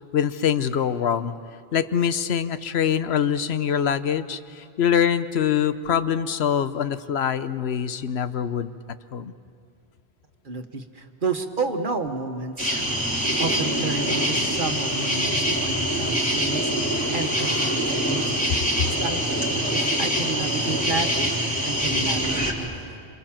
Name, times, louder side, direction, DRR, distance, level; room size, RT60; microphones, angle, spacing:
voice 1, 0.1-1.4 1.7-8.7 9.1-9.3 18.8-18.9, left 8 dB, 80° left, 12 dB, 1.1 m, -24 dB
voice 2, 10.4-12.9 13.4-16.7 17.1-18.5 18.8-21.3 21.6-23.0, right 4 dB, 55° right, 6 dB, 1.6 m, -31 dB
sound 1, 12.6-22.5, equal, 5° left, 3.8 m, -24 dB
27.5 x 27.5 x 7.4 m, 2.3 s
omnidirectional pair, 1.0 m